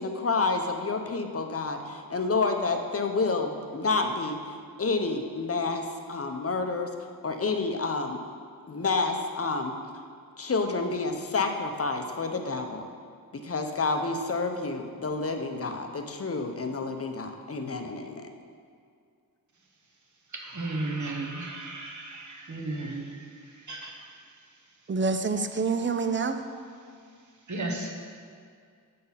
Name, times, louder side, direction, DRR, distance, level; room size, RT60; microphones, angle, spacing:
voice 1, 0.0-6.9 7.2-8.2 8.7-9.7 10.4-12.8 13.4-18.3, left 3 dB, 40° left, 0.7 m, -29 dB
voice 2, 20.3-24.0 27.5-27.9, right 2 dB, 50° right, 1.2 m, -35 dB
voice 3, 24.9-26.4, right 4 dB, 30° right, 0.5 m, -27 dB
7.6 x 4.0 x 5.6 m
cardioid pair, 60°, 37 cm